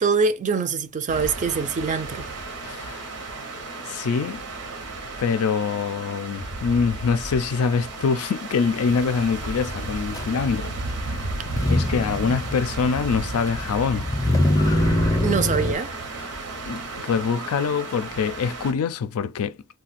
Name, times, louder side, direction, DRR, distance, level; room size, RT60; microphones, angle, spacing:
voice 1, 0.0-2.3 15.2-15.9, right 5 dB, 35° right, 0.4 m, -24 dB
sound 1, 1.1-18.7, right 2 dB, 80° right, 0.8 m, -34 dB
voice 2, 2.6-3.1 3.9-4.4 5.2-10.7 11.6-14.1 16.6-19.6, left 5 dB, 75° left, 0.4 m, -24 dB
Motor vehicle (road), 10.1-10.3 11.4-15.8, left 1 dB, 15° left, 0.5 m, -24 dB
2.4 x 2.2 x 4.0 m
head